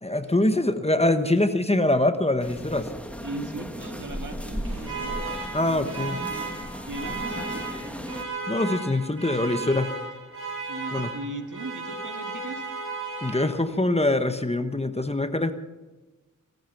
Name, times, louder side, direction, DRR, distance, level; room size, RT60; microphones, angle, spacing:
voice 1, 0.0-2.9 5.5-6.2 8.5-9.9 10.9-11.1 13.2-15.5, left 1 dB, 20° left, 9 dB, 1.0 m, -24 dB
sound 1, 2.4-8.2, equal, 5° left, 1.6 m, -36 dB
voice 2, 3.2-5.2 5.7-6.0 6.9-7.6 10.7-12.6, right 2 dB, 70° right, 6 dB, 1.7 m, -38 dB
Alarm, 4.4-13.8, right 3 dB, 45° right, 7.6 m, -35 dB
17.0 x 13.0 x 5.9 m, 1.2 s
wide cardioid pair, 70°, 32 cm